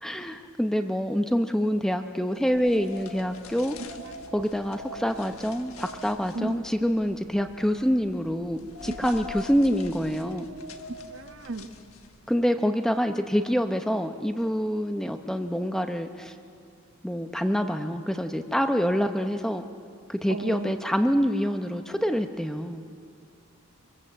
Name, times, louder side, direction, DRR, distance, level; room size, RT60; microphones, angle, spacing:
voice 1, 0.0-3.8 4.3-10.5 12.3-16.3 17.0-19.6 20.1-22.8, equal, ahead, 6 dB, 0.8 m, -26 dB
sound 1, 2.4-12.3, left 2 dB, 85° left, 1.5 m, -44 dB
voice 2, 11.1-11.7 20.3-20.7, right 3 dB, 60° right, 7 dB, 1.2 m, -34 dB
23.5 x 23.5 x 7.6 m, 2.3 s
head